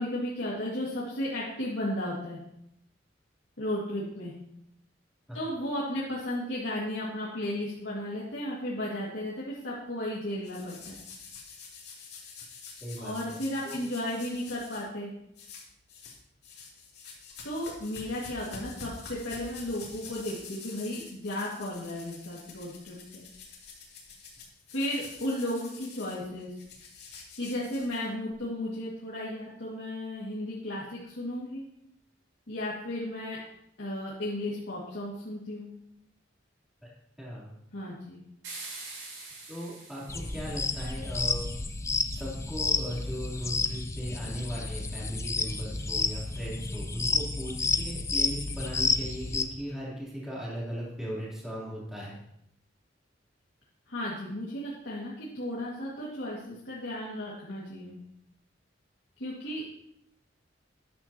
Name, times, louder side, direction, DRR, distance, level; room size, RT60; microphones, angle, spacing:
voice 1, 0.0-2.4 3.6-4.3 5.3-11.0 13.0-15.1 17.4-23.2 24.7-26.6 27.3-31.6 32.5-33.4 33.8-35.7 37.7-38.2 53.9-58.0 59.2-59.7, left 1 dB, 75° left, -6 dB, 2.1 m, -34 dB
sound 1, 10.4-14.8 15.3-16.2 16.4-28.3, left 4 dB, 60° left, 2.7 m, -47 dB
voice 2, 12.8-13.4 13.6-13.8 37.2-37.6 39.5-41.5 42.1-52.2, equal, 5° right, -7 dB, 3.1 m, -37 dB
sound 2, 38.4-40.8, right 3 dB, 80° right, 4.3 m, -44 dB
sound 3, 40.1-49.4, left 4 dB, 15° left, 0.6 m, -31 dB
12.5 x 9.8 x 2.9 m, 0.78 s
head